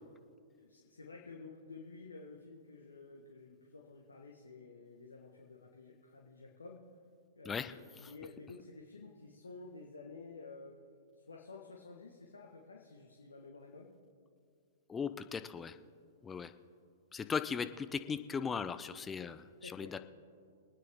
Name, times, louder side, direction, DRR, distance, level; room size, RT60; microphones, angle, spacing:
voice 1, 0.6-6.8 7.4-10.8 11.2-13.9 19.6-20.0, left 3 dB, 85° left, -1 dB, 1.5 m, -52 dB
voice 2, 14.9-15.7 16.2-16.5 17.1-19.4 19.8-20.0, left 6 dB, 15° left, 11 dB, 0.6 m, -37 dB
24.5 x 9.5 x 3.6 m, 2.2 s
figure-of-eight pair, 110°, 0 cm